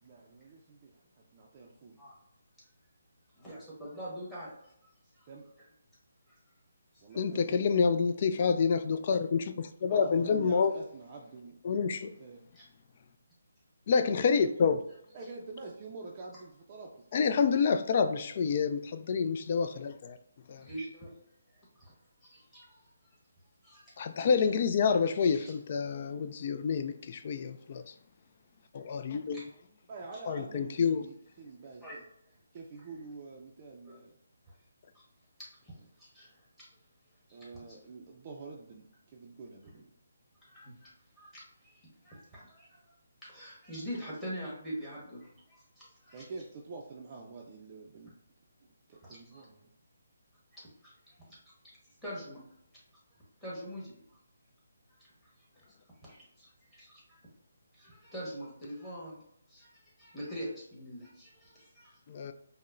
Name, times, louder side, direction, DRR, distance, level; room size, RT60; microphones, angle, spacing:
voice 1, 0.0-1.0 1.3-2.0 5.3-5.5 7.0-7.7 9.9-11.6 12.2-12.5 15.1-17.5 29.9-32.0 32.5-34.2 37.3-39.9 46.1-48.1 48.9-49.7 54.1-54.2, right 3 dB, 30° right, 0.4 m, -46 dB
voice 2, 3.4-4.7 5.2-5.3 6.3-6.4 12.5-12.6 20.7-21.1 21.8-21.9 22.2-22.8 23.6-24.3 25.3-25.5 29.3-29.4 31.8-31.9 33.8-34.0 36.0-36.7 37.5-37.8 40.5-40.9 41.2-42.8 43.2-46.2 49.0-49.4 50.5-50.9 51.3-51.4 52.0-52.4 53.4-53.9 56.0-57.2 57.7-59.2 59.5-59.7 60.0-62.0, equal, 5° left, 1.3 m, -44 dB
voice 3, 7.2-10.7 11.6-12.1 13.9-14.8 17.1-20.2 20.5-20.7 24.0-27.9 28.7-29.4 30.3-31.0 62.1-62.3, left 5 dB, 40° left, 0.3 m, -28 dB
5.2 x 2.1 x 2.5 m
hypercardioid pair, 160°, 0 cm